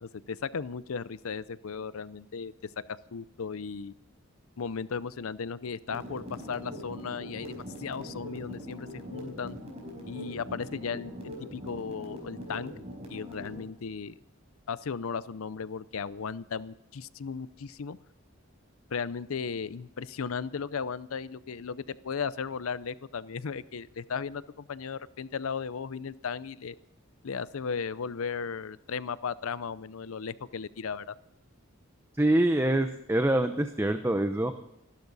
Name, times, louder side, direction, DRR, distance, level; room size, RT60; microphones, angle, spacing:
voice 1, 0.0-2.5 3.1-3.9 4.6-9.6 10.1-12.7 13.1-14.2 14.7-18.0 18.9-26.7 27.2-31.1, left 6 dB, 85° left, 17 dB, 0.6 m, -36 dB
sound 1, 5.9-13.6, equal, 30° right, 5.0 m, -42 dB
voice 2, 32.2-34.5, right 1 dB, 10° right, 7 dB, 0.7 m, -25 dB
28.0 x 12.0 x 4.1 m, 0.81 s
head